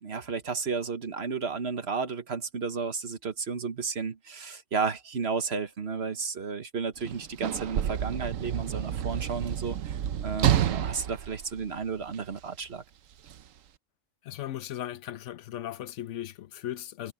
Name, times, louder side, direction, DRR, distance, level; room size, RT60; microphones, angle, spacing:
voice 1, 0.0-12.8, right 5 dB, 55° right, 1.5 m, -33 dB
Sliding door / Slam, 7.0-12.4 13.3-13.4, right 10 dB, 85° right, 1.2 m, -29 dB
voice 2, 14.3-17.1, left 12 dB, 70° left, 0.9 m, -37 dB
omnidirectional pair, 1.3 m